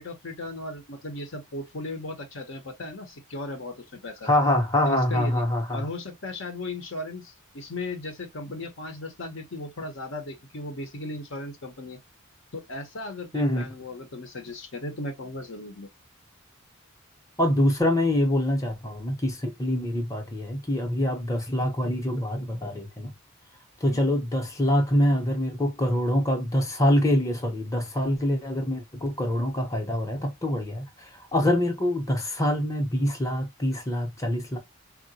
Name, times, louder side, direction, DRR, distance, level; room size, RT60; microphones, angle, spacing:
voice 1, 0.0-4.3 4.9-5.4 5.7-12.0 12.5-15.9 23.8-24.0, left 2 dB, 65° left, 0.8 m, -36 dB
voice 2, 4.2-5.9 13.3-13.7 17.4-23.1 23.8-34.6, left 1 dB, 15° left, 0.7 m, -25 dB
3.7 x 2.1 x 2.7 m
head